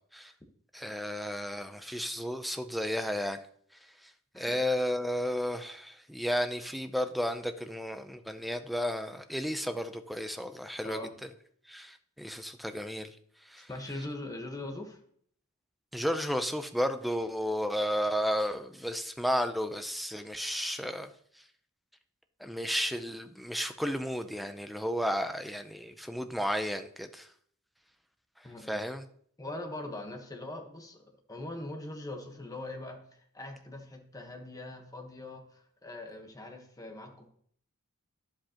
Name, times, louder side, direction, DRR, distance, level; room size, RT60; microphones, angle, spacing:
voice 1, 0.7-3.4 4.3-11.0 11.7-13.1 13.5-13.7 15.9-21.1 22.4-27.3 28.7-29.0, equal, ahead, 8 dB, 0.5 m, -33 dB
voice 2, 10.8-11.1 13.6-15.0 28.4-28.8 29.4-31.0 31.3-37.3, left 2 dB, 15° left, 4 dB, 1.1 m, -41 dB
10.5 x 7.6 x 2.9 m, 0.62 s
head